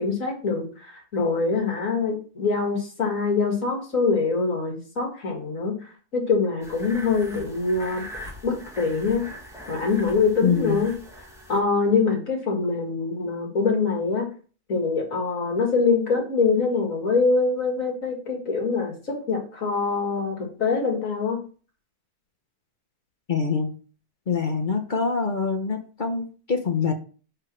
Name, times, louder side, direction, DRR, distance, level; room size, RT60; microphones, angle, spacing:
voice 1, 0.0-5.7 6.1-9.2 9.7-10.9 11.5-14.3 14.7-21.4, left 4 dB, 60° left, 0 dB, 2.4 m, -24 dB
sound 1, 6.6-11.6, equal, ahead, 1.4 m, -42 dB
voice 2, 10.4-10.8 23.3-23.7 24.3-26.9, left 5 dB, 40° left, 3 dB, 0.8 m, -25 dB
5.0 x 4.6 x 6.1 m, 0.39 s
omnidirectional pair, 1.6 m